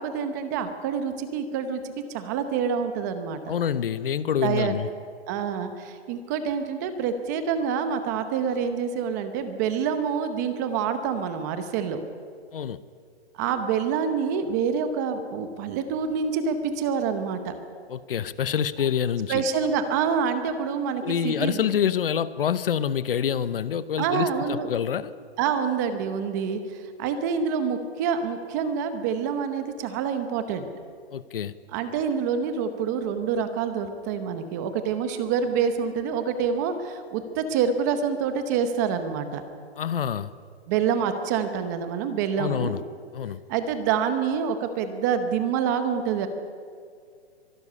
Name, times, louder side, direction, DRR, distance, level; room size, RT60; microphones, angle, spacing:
voice 1, 0.0-3.4 4.4-4.8 5.3-12.0 13.3-17.5 19.3-21.7 24.0-24.7 25.4-30.7 31.7-39.4 40.7-42.8 43.5-46.3, right 6 dB, 15° right, 9 dB, 0.8 m, -27 dB
voice 2, 3.5-4.9 12.5-12.8 17.9-19.4 21.0-25.1 31.1-31.5 39.8-40.3 42.4-42.8 43.1-43.4, left 8 dB, 55° left, 16 dB, 0.9 m, -26 dB
24.0 x 12.5 x 9.9 m, 2.2 s
hypercardioid pair, 165°, 33 cm